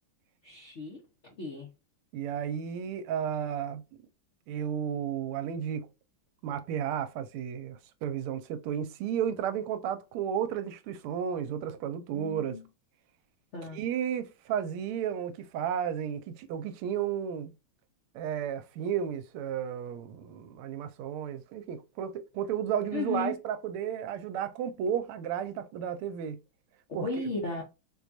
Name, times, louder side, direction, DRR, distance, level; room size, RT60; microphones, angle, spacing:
voice 1, 0.4-1.0 1.4-1.7 12.1-12.6 13.5-13.8 22.9-23.3 26.9-27.6, left 3 dB, 60° left, 0.7 m, -35 dB
voice 2, 2.1-3.8 4.5-5.9 6.4-12.6 13.7-17.5 18.1-26.4 26.9-27.2, right 9 dB, 85° right, 1.4 m, -33 dB
4.6 x 2.3 x 2.6 m
omnidirectional pair, 2.4 m